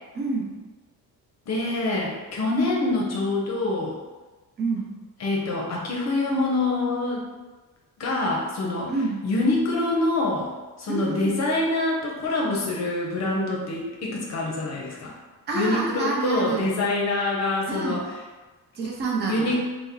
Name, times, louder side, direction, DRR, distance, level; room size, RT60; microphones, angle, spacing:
voice 1, 0.1-0.5 4.6-4.9 8.9-9.2 10.9-11.3 15.5-16.7 17.7-18.1 18.7-19.6, right 3 dB, 30° right, -2 dB, 0.5 m, -27 dB
voice 2, 1.5-3.9 5.2-7.2 8.0-8.9 9.2-10.5 10.8-15.1 15.5-18.0 19.3-19.6, left 2 dB, 50° left, -2 dB, 0.7 m, -25 dB
2.9 x 2.1 x 3.6 m, 1.2 s
cardioid pair, 135°, 35 cm